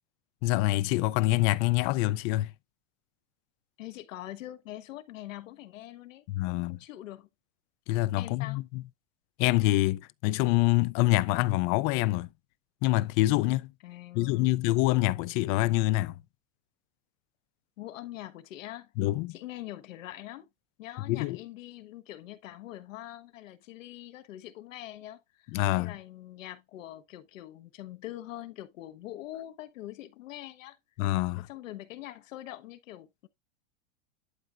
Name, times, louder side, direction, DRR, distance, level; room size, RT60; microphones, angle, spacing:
voice 1, 0.4-2.5 6.3-6.8 7.9-8.8 9.4-12.3 12.8-13.7 14.1-16.1 19.0-19.4 21.1-21.4 25.5-26.0 31.0-31.5, left 18 dB, 35° left, 0.4 m, -26 dB
voice 2, 3.8-7.3 8.2-8.6 13.8-14.6 17.8-18.9 19.3-20.5 20.8-30.8 31.4-33.3, left 14 dB, 80° left, 1.2 m, -43 dB
11.5 x 4.5 x 2.4 m
supercardioid pair, 135°, 38 cm